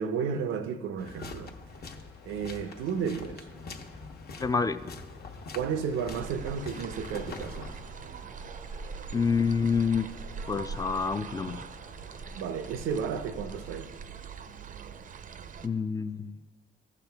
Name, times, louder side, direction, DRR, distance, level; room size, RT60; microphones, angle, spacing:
voice 1, 0.0-1.5 2.2-3.5 5.5-7.7 12.4-13.9, right 6 dB, 85° right, 0.6 m, -32 dB
sound 1, 1.0-7.8, left 3 dB, 50° left, 1.0 m, -44 dB
sound 2, 1.7-13.8, left 4 dB, 80° left, 1.3 m, -55 dB
voice 2, 4.4-4.9 9.1-10.1 10.5-11.6 15.6-16.4, left 5 dB, 20° left, 0.3 m, -27 dB
sound 3, 6.1-15.7, right 5 dB, 40° right, 0.5 m, -42 dB
14.5 x 5.9 x 3.5 m
cardioid pair, 90°, 20 cm